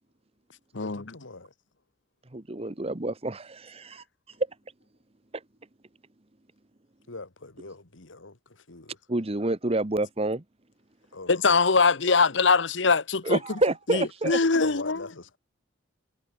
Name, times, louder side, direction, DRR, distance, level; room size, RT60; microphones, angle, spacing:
voice 1, 0.8-1.5 7.1-9.0 11.1-11.3 14.6-15.4, left 3 dB, 85° left, 2.3 m, -43 dB
voice 2, 2.3-4.0 9.1-10.4 13.2-14.4, right 2 dB, 30° right, 1.1 m, -28 dB
voice 3, 11.3-13.4 13.9-15.0, left 4 dB, 70° left, 1.1 m, -22 dB
head